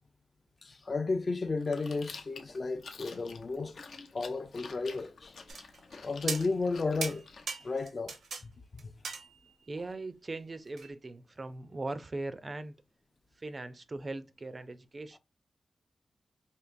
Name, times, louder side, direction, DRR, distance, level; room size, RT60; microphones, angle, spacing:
voice 1, 0.6-5.4 6.0-7.3 7.6-8.2 8.4-8.9, left 3 dB, 40° left, 0.5 m, -33 dB
Chewing mastication, 1.6-7.4, left 4 dB, 75° left, 0.8 m, -49 dB
sound 1, 5.5-6.0 6.3-6.7 7.0-8.4 8.8-9.7 10.8-10.9, right 5 dB, 90° right, 0.8 m, -38 dB
voice 2, 9.7-12.8 13.4-15.2, right 2 dB, 35° right, 0.4 m, -40 dB
4.5 x 2.8 x 2.5 m
wide cardioid pair, 100°, 0 cm